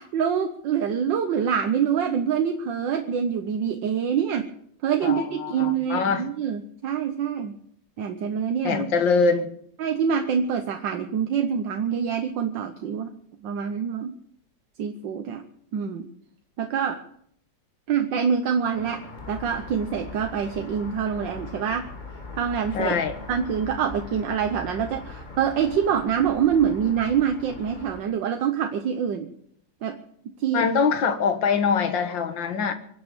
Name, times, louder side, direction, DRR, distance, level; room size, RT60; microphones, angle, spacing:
voice 1, 0.0-4.5 4.8-7.5 8.0-8.8 9.8-13.1 13.4-14.1 14.8-15.4 15.7-16.1 16.6-17.0 17.9-21.9 22.4-23.0 23.3-29.3 29.8-30.0 30.4-30.7, right 7 dB, 80° right, 6 dB, 1.7 m, -25 dB
voice 2, 5.0-6.3 8.6-9.5 22.7-23.2 30.5-32.7, left 5 dB, 90° left, 9 dB, 2.1 m, -23 dB
sound 1, 18.7-28.0, left 3 dB, 25° left, 1.8 m, -40 dB
24.5 x 8.5 x 7.0 m, 0.68 s
omnidirectional pair, 2.0 m